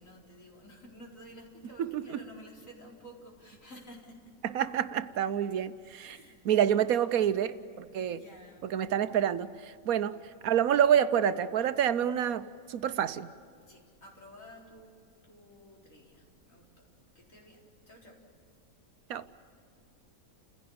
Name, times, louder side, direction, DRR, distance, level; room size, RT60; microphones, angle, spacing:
voice 1, 0.0-4.2 6.0-6.4 6.9-9.0 13.7-14.9 15.2-16.7 17.1-17.6 17.9-18.2, equal, 65° left, 4.7 m, -52 dB
voice 2, 1.8-2.2 4.4-6.2 6.4-7.5 7.9-8.2 8.6-10.2 10.4-13.3 19.1-19.2, right 9 dB, 80° right, 1.2 m, -27 dB
29.5 x 16.5 x 8.7 m
omnidirectional pair, 1.5 m